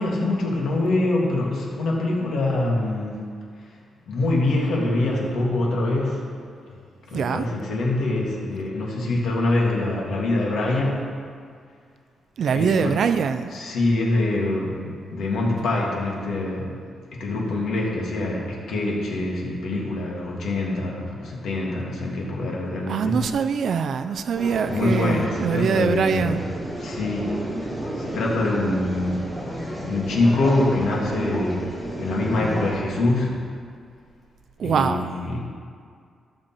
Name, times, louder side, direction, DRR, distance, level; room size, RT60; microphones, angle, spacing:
voice 1, 0.0-3.3 4.1-6.3 6.7-6.8 7.1-11.1 12.5-13.0 13.5-16.7 17.1-23.2 24.7-26.4 26.8-33.4 34.6-35.4, left 2 dB, 65° left, -2 dB, 2.0 m, -25 dB
voice 2, 7.1-7.5 12.4-13.5 22.9-26.4 34.6-35.1, right 6 dB, 50° right, 10 dB, 0.4 m, -23 dB
sound 1, 24.3-32.8, right 1 dB, 10° right, 1.6 m, -31 dB
13.5 x 6.2 x 4.4 m, 2.2 s
wide cardioid pair, 175°, 0 cm